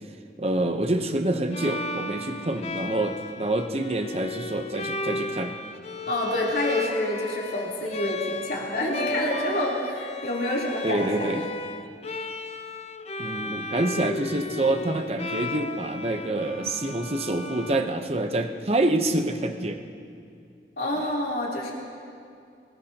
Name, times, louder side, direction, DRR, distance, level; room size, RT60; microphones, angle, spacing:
voice 1, 0.4-5.5 10.8-11.5 13.2-19.8, right 1 dB, 35° right, 6 dB, 0.8 m, -27 dB
Bowed string instrument, 1.5-18.4, left 2 dB, 35° left, 0.5 m, -34 dB
voice 2, 6.1-11.3 20.8-21.7, left 1 dB, 55° left, -5 dB, 3.5 m, -28 dB
24.0 x 18.5 x 2.9 m, 2.4 s
head